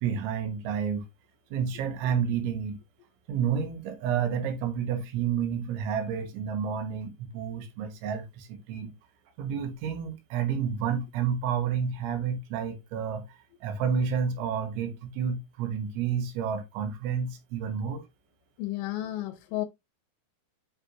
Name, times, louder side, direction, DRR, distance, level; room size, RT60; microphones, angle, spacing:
voice 1, 0.0-1.1 1.5-2.8 3.3-8.9 9.4-18.1, right 7 dB, 85° right, 3.7 m, -30 dB
voice 2, 18.6-19.7, left 15 dB, 80° left, 2.8 m, -32 dB
11.0 x 4.9 x 2.6 m
omnidirectional pair, 5.4 m